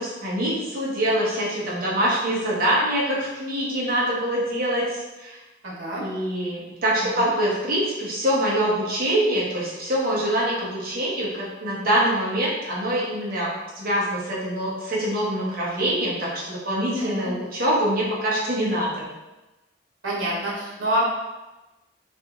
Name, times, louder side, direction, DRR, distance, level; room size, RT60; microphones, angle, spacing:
voice 1, 0.0-5.4 6.0-19.1, right 1 dB, 45° right, -6 dB, 0.7 m, -24 dB
voice 2, 5.6-6.0 7.2-7.3 16.9-17.3 20.0-21.0, equal, 90° right, -6 dB, 1.0 m, -27 dB
2.7 x 2.5 x 2.4 m, 1.1 s
head